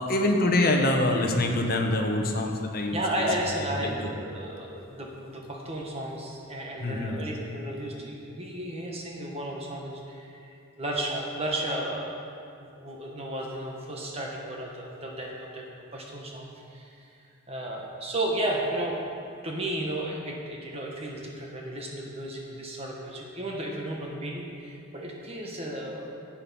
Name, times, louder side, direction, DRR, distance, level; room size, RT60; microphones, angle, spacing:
voice 1, 0.0-3.3 3.6-4.1 6.8-7.2, left 1 dB, 45° left, 2 dB, 1.0 m, -25 dB
voice 2, 2.9-12.2 12.6-15.6 15.9-17.0 17.5-19.0 19.4-26.1, right 1 dB, 25° right, -1 dB, 1.2 m, -33 dB
10.5 x 8.7 x 5.5 m, 2.4 s
head